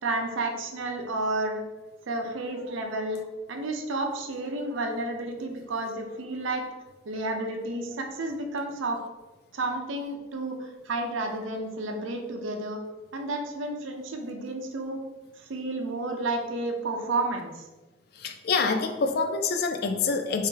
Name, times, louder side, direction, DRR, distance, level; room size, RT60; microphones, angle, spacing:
voice 1, 0.0-1.6 2.1-3.2 3.5-6.6 7.0-9.0 9.5-12.8 13.1-15.0 15.3-17.7, right 2 dB, 75° right, 3 dB, 0.5 m, -31 dB
voice 2, 18.1-20.5, left 4 dB, 50° left, 6 dB, 0.3 m, -26 dB
3.2 x 2.7 x 3.7 m, 1.1 s
head